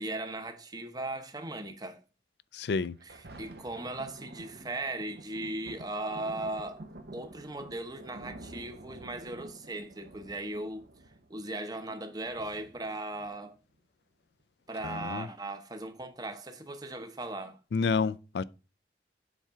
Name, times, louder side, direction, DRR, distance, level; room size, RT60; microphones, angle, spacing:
voice 1, 0.0-2.0 3.4-6.9 7.1-10.9 11.3-13.6 14.7-17.6, right 2 dB, 20° right, 0.9 m, -38 dB
voice 2, 2.5-3.0 14.8-15.3 17.7-18.4, left 5 dB, 70° left, 0.4 m, -29 dB
Thunder, 2.8-13.8 14.4-14.5, right 1 dB, 65° right, 0.9 m, -49 dB
7.3 x 3.5 x 5.6 m
head